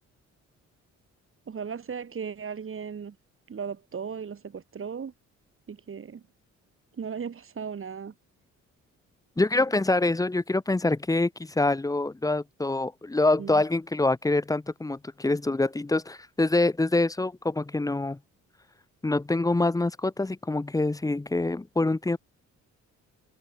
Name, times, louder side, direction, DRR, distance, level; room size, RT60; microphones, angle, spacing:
voice 1, 1.5-3.2 3.5-5.1 5.7-6.2 7.0-8.1 13.4-13.6, right 6 dB, 45° right, 6.1 m, -36 dB
voice 2, 9.4-18.2 19.0-22.2, left 2 dB, 10° left, 0.9 m, -25 dB
cardioid pair, 90°, 30 cm